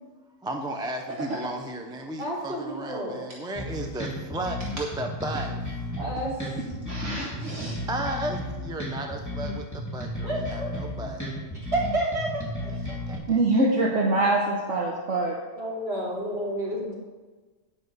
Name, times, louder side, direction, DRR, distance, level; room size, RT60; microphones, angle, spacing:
voice 1, 0.4-5.5 7.9-11.2 12.9-13.6, right 1 dB, 5° right, 3 dB, 0.5 m, -34 dB
voice 2, 2.2-3.2 6.0-6.3 10.2-10.7 11.7-12.8 15.5-16.9, right 1 dB, 45° right, -7 dB, 3.8 m, -30 dB
sound 1, 3.6-13.2, left 1 dB, 10° left, 3.0 m, -33 dB
voice 3, 6.6-7.8 13.3-15.3, right 2 dB, 65° right, -2 dB, 1.4 m, -25 dB
9.4 x 5.7 x 6.6 m, 1.3 s
omnidirectional pair, 1.4 m